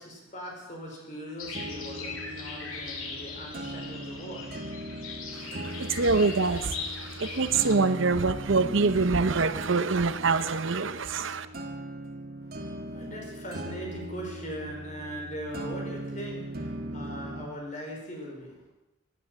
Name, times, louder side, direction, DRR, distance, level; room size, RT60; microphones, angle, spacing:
voice 1, 0.0-5.1 12.5-18.7, equal, 35° left, 0 dB, 4.6 m, -40 dB
sound 1, 1.4-7.7, left 4 dB, 85° left, 3.1 m, -40 dB
sound 2, 1.5-17.5, right 1 dB, 45° right, 1.7 m, -39 dB
voice 2, 5.3-11.5, right 4 dB, 65° right, 12 dB, 0.8 m, -25 dB
17.0 x 9.7 x 7.7 m, 0.96 s
head